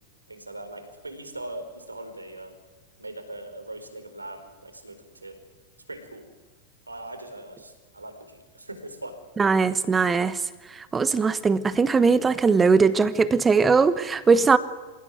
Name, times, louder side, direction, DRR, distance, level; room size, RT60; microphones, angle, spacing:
voice 1, 0.3-2.6 3.0-5.4 5.9-6.2 6.9-9.1, right 1 dB, 80° right, 7 dB, 4.5 m, -40 dB
voice 2, 9.4-10.4 10.7-14.6, right 5 dB, 15° right, 16 dB, 1.1 m, -20 dB
27.5 x 16.5 x 9.6 m, 1.2 s
figure-of-eight pair, 90°, 0 cm